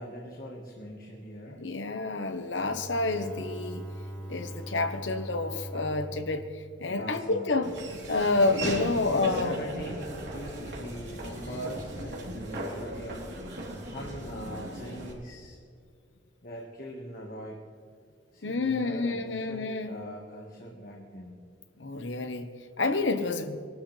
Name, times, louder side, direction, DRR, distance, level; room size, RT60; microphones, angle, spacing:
voice 1, 0.0-1.7 6.8-7.5 9.0-13.3 13.8-15.6 16.4-17.6 18.3-21.4, equal, 50° left, -1 dB, 1.6 m, -41 dB
voice 2, 1.6-3.9 4.3-7.7 8.1-9.5 18.4-19.9 21.8-22.5 22.8-23.6, left 3 dB, 80° left, 7 dB, 1.1 m, -29 dB
Bowed string instrument, 2.5-7.7, right 1 dB, 10° left, 2.1 m, -42 dB
Laughter / Walk footsteps, 7.6-15.1, right 1 dB, 70° right, 3.5 m, -37 dB
23.0 x 12.5 x 3.3 m, 2.3 s
head